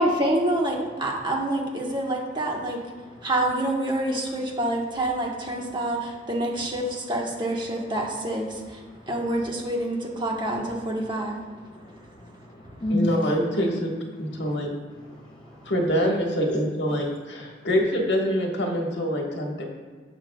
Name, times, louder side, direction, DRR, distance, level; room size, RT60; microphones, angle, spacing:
voice 1, 0.0-11.4 12.6-12.7, right 1 dB, 25° right, -1 dB, 1.3 m, -27 dB
voice 2, 11.7-13.2 14.4-14.6 15.0-15.7 16.9-17.1, left 1 dB, 25° left, 1 dB, 0.6 m, -32 dB
voice 3, 12.9-13.9 14.2-14.7 15.6-19.6, equal, 70° left, 0 dB, 1.5 m, -25 dB
17.5 x 6.1 x 2.3 m, 1.5 s
head